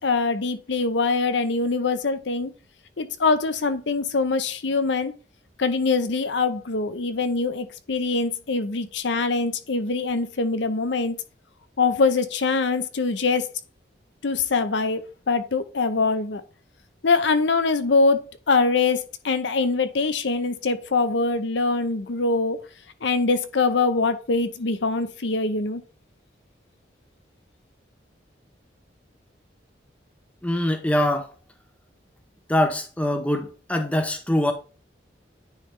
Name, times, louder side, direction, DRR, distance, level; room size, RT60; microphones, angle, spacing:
voice 1, 0.0-2.5 3.0-5.1 5.6-11.2 11.8-13.5 14.2-16.4 17.0-22.6 23.0-25.8, left 4 dB, 75° left, 0.7 m, -23 dB
voice 2, 30.4-31.3 32.5-34.5, left 1 dB, 5° left, 0.7 m, -23 dB
9.7 x 3.5 x 3.3 m
head